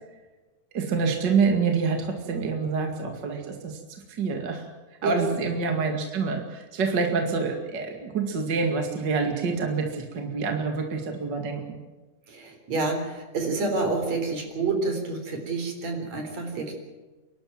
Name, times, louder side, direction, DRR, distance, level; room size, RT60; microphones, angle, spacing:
voice 1, 0.7-3.8 4.2-4.7 5.0-11.8, right 4 dB, 40° right, 4 dB, 2.5 m, -27 dB
voice 2, 5.0-5.4 12.3-16.7, right 3 dB, 60° right, 4 dB, 5.1 m, -28 dB
29.0 x 12.5 x 9.1 m, 1.2 s
omnidirectional pair, 3.4 m